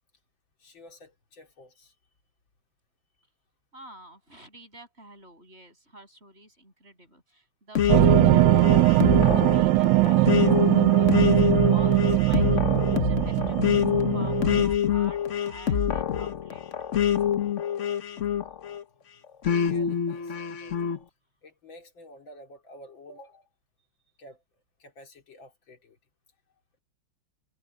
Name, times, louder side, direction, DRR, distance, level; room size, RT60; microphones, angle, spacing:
voice 1, 0.6-2.0 19.2-21.0 21.4-23.5 24.2-24.4 24.8-26.0, left 1 dB, 90° left, 4.1 m, -50 dB
voice 2, 3.7-12.7 13.0-16.6, right 2 dB, 30° right, 7.1 m, -49 dB
sound 1, 7.7-18.8 19.4-21.0, left 9 dB, 45° left, 1.2 m, -26 dB
sound 2, 7.9-14.6, right 18 dB, 75° right, 1.2 m, -20 dB
omnidirectional pair, 2.1 m